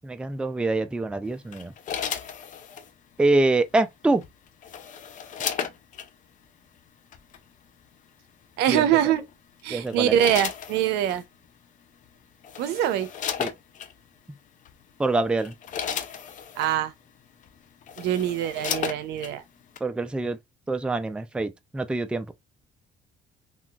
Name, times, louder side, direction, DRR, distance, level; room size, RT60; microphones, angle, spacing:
voice 1, 0.0-1.7 3.2-4.2 8.7-8.8 9.7-10.1 13.4-13.5 15.0-15.5 19.8-20.4 20.7-22.3, right 2 dB, 5° right, 0.3 m, -25 dB
sound 1, 1.5-2.9 4.2-6.1 7.1-7.4 9.0-9.3 9.9-11.2 12.0-12.1 12.4-13.9 14.6-14.8 15.2-16.7 17.4-17.5 17.8-19.3 19.8-19.9, left 8 dB, 50° left, 0.5 m, -34 dB
voice 2, 8.6-9.2 9.6-11.2 12.6-13.1 16.6-16.9 18.0-19.4, right 11 dB, 90° right, 0.5 m, -23 dB
3.7 x 2.4 x 2.3 m
cardioid pair, 110°, 17 cm